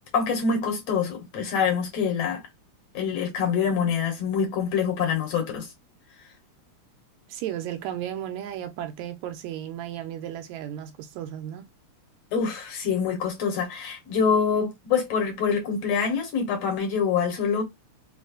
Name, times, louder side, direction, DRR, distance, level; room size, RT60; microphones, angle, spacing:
voice 1, 0.1-2.4 2.9-5.7 12.3-17.6, left 6 dB, 65° left, 2.0 m, -25 dB
voice 2, 7.3-11.7, right 11 dB, 80° right, 1.9 m, -34 dB
4.7 x 2.1 x 2.4 m
omnidirectional pair, 3.3 m